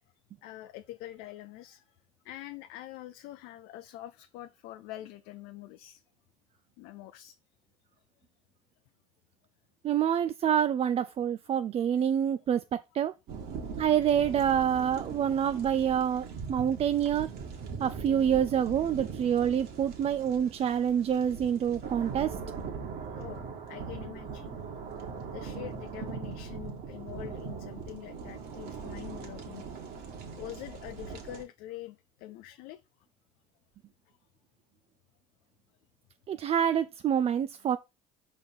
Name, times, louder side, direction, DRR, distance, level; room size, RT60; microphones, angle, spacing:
voice 1, 0.4-1.8 2.2-6.0 6.8-7.4 23.2-24.5 25.3-29.6 29.9-30.0 30.4-32.8, left 14 dB, 65° left, 0.5 m, -45 dB
voice 2, 9.8-13.1 13.8-17.3 17.8-22.4 36.3-37.8, right 9 dB, 35° right, 0.4 m, -27 dB
sound 1, 13.3-31.4, right 5 dB, 60° right, 2.0 m, -40 dB
5.2 x 4.1 x 5.4 m
hypercardioid pair, 70°, 18 cm